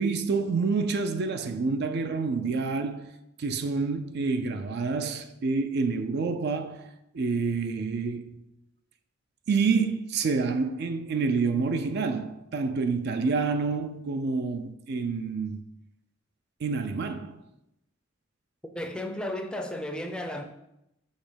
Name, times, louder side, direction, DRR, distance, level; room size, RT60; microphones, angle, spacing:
voice 1, 0.0-3.1 3.4-6.9 7.1-8.4 9.5-15.6 16.6-17.4, right 4 dB, 55° right, 0.4 m, -28 dB
voice 2, 18.7-20.4, left 1 dB, 5° left, 0.5 m, -33 dB
6.5 x 2.9 x 5.0 m
head